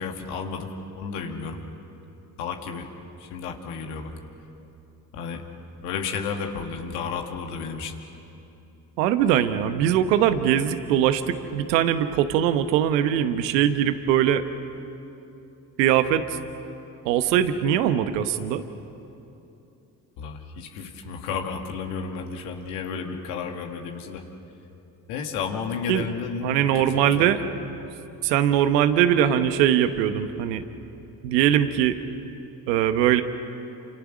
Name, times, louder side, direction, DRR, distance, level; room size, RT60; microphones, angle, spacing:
voice 1, 0.0-1.6 2.4-2.9 3.2-4.1 5.1-5.4 5.8-7.9 20.2-24.2 25.1-27.3, left 5 dB, 80° left, 3 dB, 2.2 m, -32 dB
voice 2, 9.0-14.4 15.8-16.4 17.0-18.6 25.9-26.1 26.4-27.4 28.2-30.6 31.2-32.0 32.7-33.2, right 10 dB, 85° right, 11 dB, 1.2 m, -21 dB
29.0 x 27.0 x 6.3 m, 2.9 s
hypercardioid pair, 45°, 49 cm